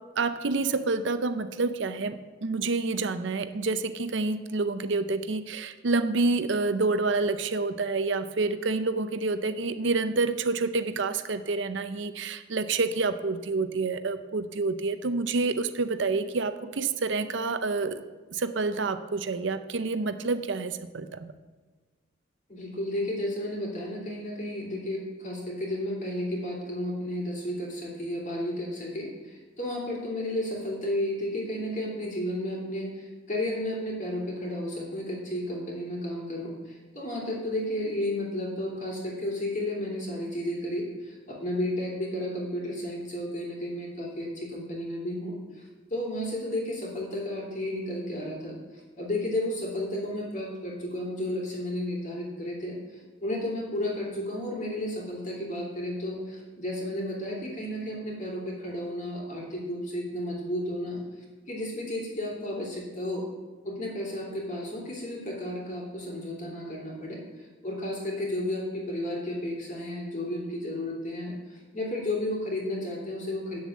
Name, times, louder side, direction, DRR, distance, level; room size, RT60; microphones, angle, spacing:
voice 1, 0.2-18.0 18.3-21.3, right 3 dB, 65° right, 10 dB, 0.6 m, -28 dB
voice 2, 22.5-45.6 45.9-48.5 49.0-52.8 53.2-61.0 61.5-63.3 63.6-73.6, left 1 dB, 40° left, -2 dB, 3.0 m, -32 dB
8.7 x 7.3 x 7.3 m, 1.3 s
head